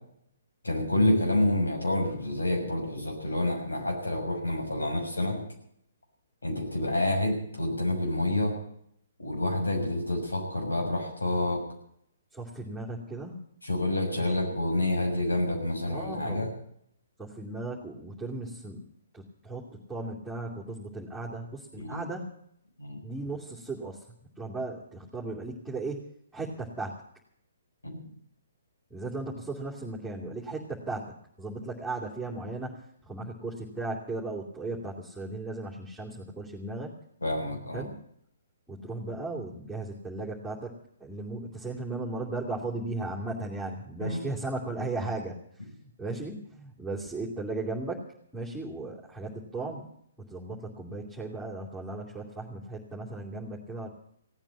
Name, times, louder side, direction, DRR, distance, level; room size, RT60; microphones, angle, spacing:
voice 1, 0.6-5.4 6.4-8.5 9.2-11.6 13.6-16.5 21.8-22.1 22.8-23.0 27.8-28.0 37.2-37.8 44.0-44.3, left 1 dB, 90° left, 2 dB, 6.4 m, -28 dB
voice 2, 12.3-13.4 14.1-14.3 15.9-16.5 17.2-18.8 19.1-22.3 23.0-24.0 24.4-26.0 26.3-27.0 28.9-31.1 31.4-36.9 37.7-37.9 38.7-45.4 46.0-48.0 48.3-49.9 50.3-53.9, right 2 dB, ahead, -7 dB, 2.8 m, -36 dB
17.5 x 9.0 x 8.6 m, 0.69 s
figure-of-eight pair, 130°, 0 cm